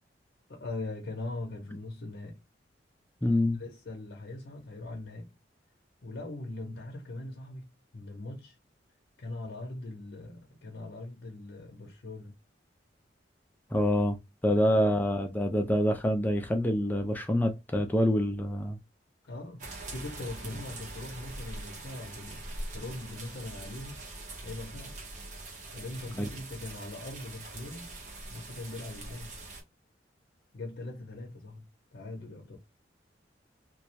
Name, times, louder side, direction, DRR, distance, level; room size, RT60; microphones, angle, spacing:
voice 1, 0.5-2.4 3.5-5.3 6.0-8.6 9.2-12.4 14.5-15.0 19.3-22.4 22.7-24.1 24.4-25.0 25.7-28.0 28.3-29.3 30.5-31.6 31.9-32.6, left 2 dB, 60° left, 0.6 m, -41 dB
voice 2, 3.2-3.6 13.7-14.2 14.4-18.8 26.2-26.3, equal, 10° left, 0.4 m, -26 dB
sound 1, 19.6-29.6, right 2 dB, 45° right, 0.7 m, -43 dB
2.3 x 2.1 x 2.7 m
head